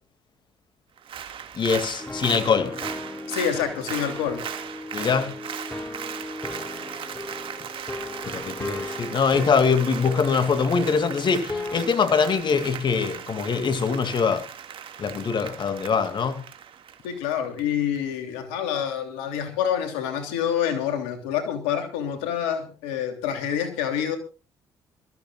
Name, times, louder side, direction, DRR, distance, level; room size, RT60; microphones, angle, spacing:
Applause, 1.0-17.6 18.0-18.1, right 8 dB, 60° right, 2.1 m, -38 dB
voice 1, 1.5-2.8 4.9-5.4 8.3-14.5 15.0-16.4, left 5 dB, 50° left, 2.4 m, -23 dB
sound 1, 2.0-11.8, left 2 dB, 20° left, 2.9 m, -36 dB
voice 2, 3.3-4.4 17.0-24.2, left 9 dB, 90° left, 3.1 m, -27 dB
25.5 x 14.0 x 2.5 m
supercardioid pair, 60°, 10 cm